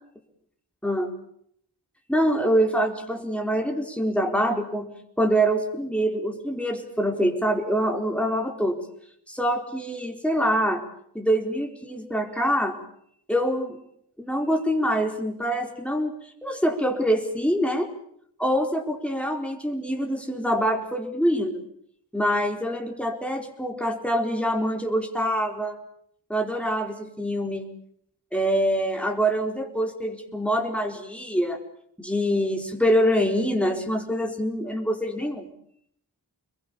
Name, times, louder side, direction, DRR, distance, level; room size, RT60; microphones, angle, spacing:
voice 1, 2.1-4.9 5.2-8.8 9.3-10.8 11.1-12.8 13.3-13.8 14.2-16.1 16.4-17.9 18.4-21.6 22.1-25.8 26.3-27.7 28.3-31.6 32.0-35.5, equal, 5° left, 3 dB, 4.5 m, -25 dB
27.5 x 22.0 x 7.2 m, 0.68 s
wide cardioid pair, 50°, 41 cm